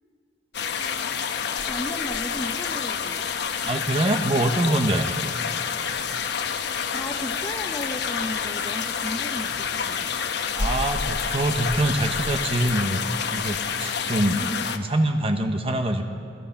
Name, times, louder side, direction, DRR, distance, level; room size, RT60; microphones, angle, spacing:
sound 1, 0.5-14.8, left 6 dB, 65° left, 1.1 m, -28 dB
voice 1, 1.6-3.3 6.9-10.1 14.3-14.9, left 1 dB, 20° left, 4 dB, 0.7 m, -35 dB
voice 2, 3.6-5.1 10.5-13.0 13.3-14.4 14.7-16.0, right 1 dB, 30° right, 6 dB, 1.1 m, -24 dB
26.5 x 18.0 x 5.8 m, 2.4 s
head